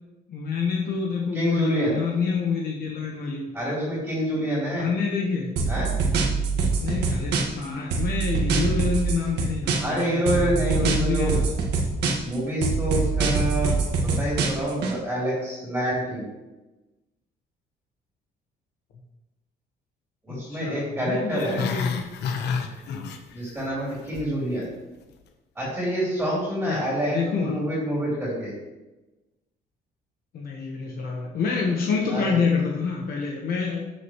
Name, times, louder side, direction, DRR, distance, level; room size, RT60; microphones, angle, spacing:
voice 1, 0.3-3.5 4.7-5.5 6.8-11.4 20.3-21.9 22.3-23.1 26.7-26.8 27.1-27.6 30.3-33.8, left 5 dB, 60° left, 0 dB, 1.2 m, -27 dB
voice 2, 1.3-2.0 3.5-4.9 5.7-5.9 9.8-11.3 12.2-13.8 14.2-16.3 20.2-21.6 23.3-24.7 25.6-28.5 32.1-32.3, equal, 10° right, -7 dB, 3.5 m, -27 dB
sound 1, 5.6-7.6 7.9-10.0 10.3-12.3 12.6-14.9, right 4 dB, 75° right, 1.7 m, -24 dB
Growling, 21.3-23.6 23.9-24.3 24.7-24.8, left 5 dB, 80° left, 1.0 m, -29 dB
13.0 x 6.6 x 3.1 m, 1.1 s
cardioid pair, 170°, 17 cm